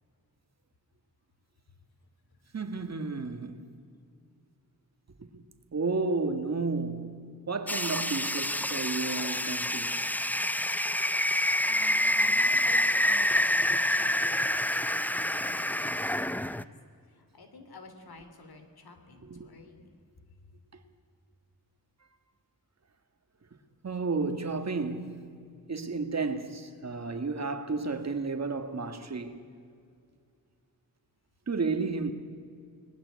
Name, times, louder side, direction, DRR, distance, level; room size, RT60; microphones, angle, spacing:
voice 1, 2.5-3.7 5.2-5.4 5.7-10.0 19.2-19.5 23.8-25.3 25.7-29.4 31.5-32.1, right 3 dB, 45° right, 1.8 m, -32 dB
sound 1, 7.7-16.6, left 1 dB, 5° left, 0.5 m, -27 dB
voice 2, 11.1-14.4 14.8-19.9 20.4-20.5, left 2 dB, 90° left, 3.2 m, -50 dB
29.5 x 19.5 x 8.4 m
wide cardioid pair, 130°, 36 cm